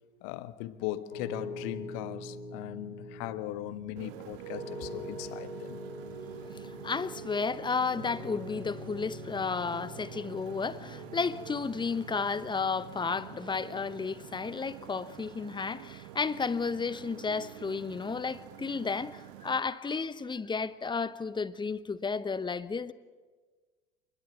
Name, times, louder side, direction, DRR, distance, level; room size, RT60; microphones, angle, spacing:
voice 1, 0.2-5.8, left 15 dB, 55° left, 1.2 m, -39 dB
Piano, 1.1-14.5, left 1 dB, 85° left, 5.9 m, -45 dB
Motorcycle, 4.0-19.6, right 15 dB, 60° right, 1.0 m, -48 dB
voice 2, 6.4-22.9, left 5 dB, 15° left, 1.0 m, -33 dB
26.5 x 21.0 x 7.3 m
figure-of-eight pair, 70°, 30 cm